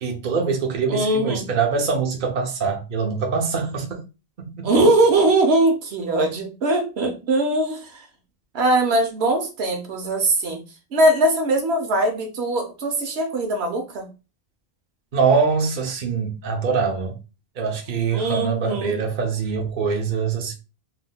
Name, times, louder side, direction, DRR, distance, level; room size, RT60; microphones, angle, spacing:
voice 1, 0.0-4.0 4.5-4.7 15.1-17.2 17.6-20.5, right 5 dB, 55° right, 0.8 m, -23 dB
voice 2, 0.9-1.5 4.6-8.1 8.5-10.6 10.9-14.1 18.1-19.0, right 2 dB, 80° right, 1.0 m, -21 dB
3.4 x 2.7 x 2.2 m
omnidirectional pair, 1.1 m